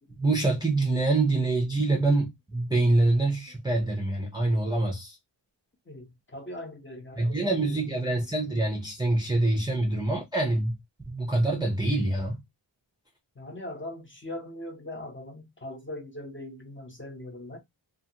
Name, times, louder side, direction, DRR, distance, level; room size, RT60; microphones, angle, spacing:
voice 1, 0.2-5.2 7.2-10.8 11.1-12.4, right 2 dB, 10° right, 0.6 m, -25 dB
voice 2, 5.9-8.0 9.5-9.6 13.3-17.6, left 1 dB, 25° left, 0.9 m, -41 dB
2.5 x 2.4 x 2.8 m
wide cardioid pair, 70°, 48 cm